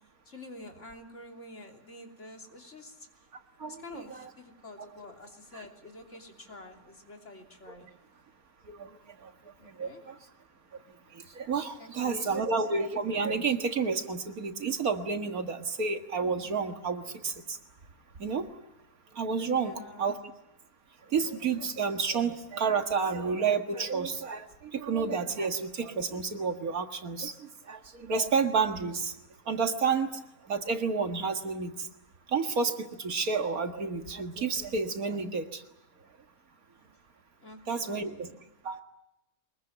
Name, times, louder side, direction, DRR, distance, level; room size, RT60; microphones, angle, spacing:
voice 1, 0.2-3.1 3.7-7.9 9.6-10.0 11.8-12.6 19.4-20.2 37.4-38.4, left 2 dB, 55° left, 2 dB, 3.5 m, -48 dB
voice 2, 3.6-4.3 8.7-8.9 9.2-9.3 9.8-10.2 11.4-17.6 18.2-18.5 19.2-20.2 21.1-29.1 29.5-30.2 30.5-31.9 32.3-35.6 37.7-38.3 38.6-38.8, right 5 dB, 80° right, 6 dB, 2.2 m, -30 dB
23.5 x 21.5 x 9.1 m, 0.86 s
omnidirectional pair, 1.5 m